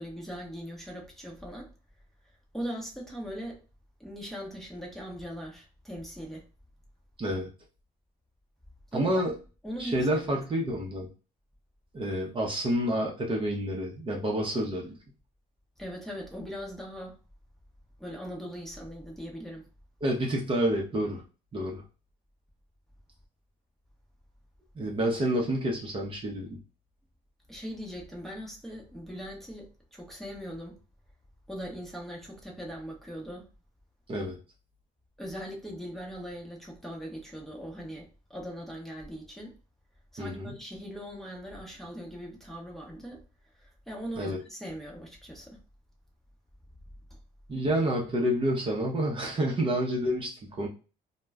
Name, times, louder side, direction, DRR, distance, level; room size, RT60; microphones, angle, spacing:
voice 1, 0.0-1.7 2.5-3.6 4.0-6.5 8.9-9.3 9.6-10.4 15.8-17.2 18.0-19.7 27.5-30.8 31.5-33.5 35.2-39.6 40.1-43.2 43.6-45.6 47.1-47.2, equal, ahead, 0.8 m, -40 dB
voice 2, 7.2-7.5 8.9-9.3 9.8-11.1 11.9-14.9 20.0-21.2 21.5-21.8 24.8-26.6 34.1-34.4 40.2-40.5 44.2-44.4 47.5-50.7, right 1 dB, 30° right, 0.7 m, -29 dB
2.2 x 2.1 x 3.4 m
cardioid pair, 110°, 17 cm